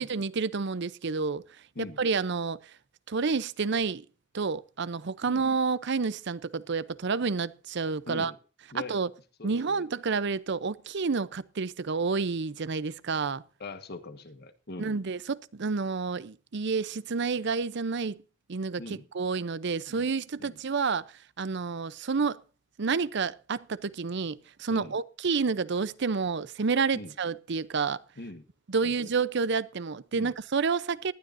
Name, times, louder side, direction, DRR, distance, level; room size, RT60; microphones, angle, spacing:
voice 1, 0.0-1.4 1.8-2.6 3.1-4.0 4.3-8.3 8.9-9.1 9.4-13.4 14.8-18.2 18.5-22.4 22.8-28.0 28.7-31.1, right 4 dB, 60° right, 0.6 m, -29 dB
voice 2, 8.1-8.4 8.7-9.0 9.4-9.8 13.6-15.0 18.8-19.1 19.9-20.1 20.4-20.6 24.7-25.0 26.9-27.1 28.2-28.5 28.8-29.1 30.1-30.4, left 2 dB, 55° left, 1.5 m, -42 dB
19.5 x 12.0 x 2.6 m
head